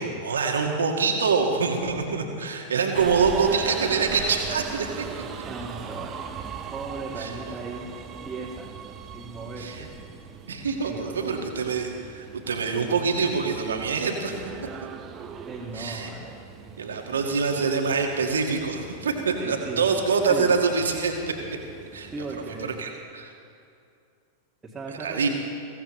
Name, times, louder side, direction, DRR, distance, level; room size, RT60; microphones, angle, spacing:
voice 1, 0.0-5.1 7.2-7.3 9.6-9.9 10.5-14.4 15.7-16.1 16.8-21.3 21.9-22.1 22.6-23.3 24.9-25.3, right 5 dB, 70° right, 3 dB, 1.8 m, -25 dB
Subway metro underground, 2.9-22.8, right 7 dB, 30° right, 1.0 m, -40 dB
voice 2, 5.1-6.3 6.7-7.9 8.3-8.7 9.1-9.9 10.8-11.5 15.5-16.4 19.4-19.9 20.3-20.5 22.1-22.7 24.6-25.3, right 3 dB, 15° right, -7 dB, 2.0 m, -37 dB
22.5 x 16.5 x 3.2 m, 2.5 s
figure-of-eight pair, 90°, 0 cm